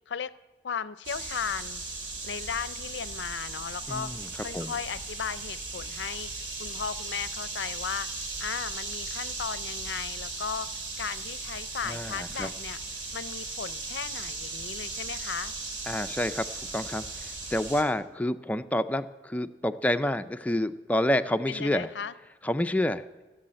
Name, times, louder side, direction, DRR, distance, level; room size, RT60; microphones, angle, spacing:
voice 1, 0.6-1.8 2.2-4.1 4.4-6.3 6.6-8.1 8.4-10.7 11.0-12.8 13.1-15.5 21.5-22.1, left 7 dB, 70° left, 16 dB, 0.5 m, -36 dB
sound 1, 1.0-17.8, right 3 dB, 80° right, 2.3 m, -37 dB
voice 2, 3.9-4.7 11.8-12.5 15.9-16.5 16.7-21.9 22.4-23.0, left 1 dB, 10° left, 9 dB, 0.4 m, -28 dB
15.5 x 7.0 x 7.6 m, 1.2 s
head